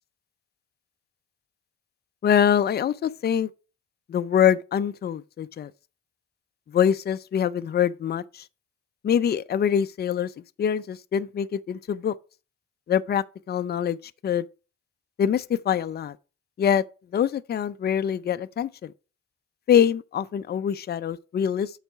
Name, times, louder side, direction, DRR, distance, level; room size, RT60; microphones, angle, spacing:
voice 1, 2.2-3.5 4.1-5.7 6.7-8.4 9.0-10.3 10.6-12.1 12.9-14.0 14.2-14.4 15.2-16.2 16.6-16.8 17.1-18.9 19.7-21.7, left 8 dB, 35° left, 0.5 m, -24 dB
7.9 x 4.1 x 5.6 m
cardioid pair, 90°, 30 cm